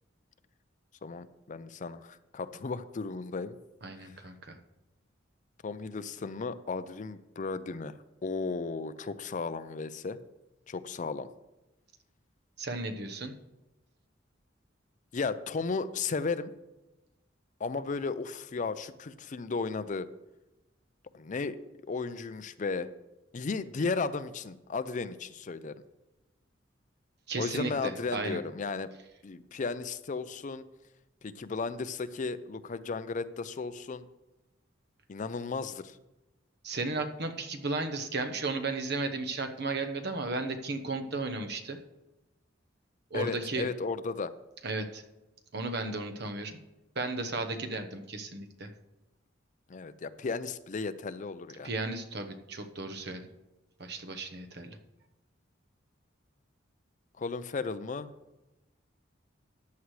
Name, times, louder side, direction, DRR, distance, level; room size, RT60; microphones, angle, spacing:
voice 1, 1.0-3.6 3.9-4.1 5.6-10.2 10.7-11.3 15.1-16.5 17.6-20.1 21.1-21.6 21.9-22.9 23.3-25.8 27.4-28.9 29.2-30.6 31.2-34.0 35.1-36.0 43.1-44.3 49.7-51.7 57.2-58.1, left 4 dB, 40° left, 13 dB, 0.4 m, -35 dB
voice 2, 3.8-4.6 12.6-13.3 27.3-28.4 36.6-41.8 43.1-43.7 44.6-45.0 45.5-46.6 46.9-48.7 51.6-53.3 53.8-54.8, right 3 dB, 60° right, 7 dB, 1.0 m, -34 dB
14.0 x 9.5 x 3.2 m, 1.0 s
head